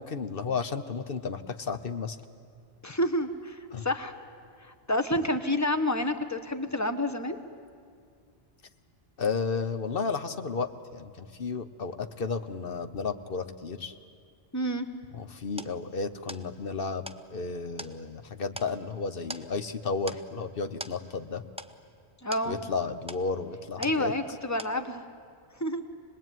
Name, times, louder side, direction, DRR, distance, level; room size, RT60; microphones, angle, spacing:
voice 1, 0.0-2.2 3.7-3.9 9.2-13.9 15.1-21.4 22.5-24.1, left 4 dB, 55° left, 9 dB, 1.1 m, -33 dB
voice 2, 2.8-4.1 4.6-7.4 14.5-14.9 22.2-22.6 23.8-25.0 25.6-25.8, left 1 dB, 15° left, 9 dB, 1.2 m, -29 dB
sound 1, 14.9-24.3 24.6-25.2, right 1 dB, 5° right, 0.6 m, -45 dB
26.0 x 20.5 x 9.2 m, 2.3 s
omnidirectional pair, 1.2 m